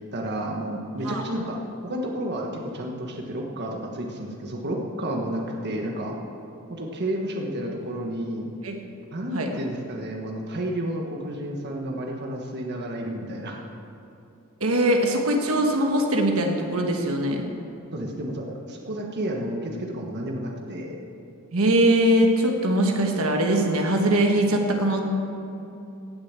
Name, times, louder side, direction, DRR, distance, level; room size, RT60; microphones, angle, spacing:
voice 1, 0.1-1.6 1.8-6.2 6.7-8.5 9.1-13.6 17.9-21.0, right 1 dB, 50° right, 0 dB, 1.3 m, -31 dB
voice 2, 14.6-17.4 21.5-25.0, right 1 dB, 70° right, 2 dB, 1.4 m, -21 dB
17.0 x 6.8 x 7.5 m, 2.8 s
head